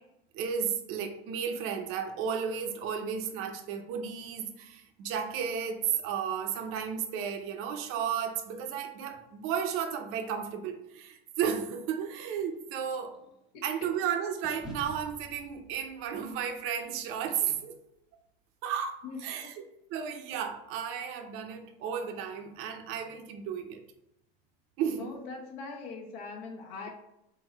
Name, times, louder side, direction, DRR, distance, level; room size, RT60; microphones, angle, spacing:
voice 1, 0.3-13.2 13.6-17.8 18.6-19.5 19.9-23.8 24.8-25.1, right 7 dB, 45° right, 4 dB, 0.6 m, -33 dB
sound 1, 11.7-14.0 14.4-18.7, right 1 dB, ahead, 0.4 m, -51 dB
voice 2, 19.0-19.5 25.0-26.9, left 4 dB, 75° left, 1 dB, 1.1 m, -41 dB
3.9 x 2.6 x 4.1 m, 0.87 s
supercardioid pair, 140°, 30 cm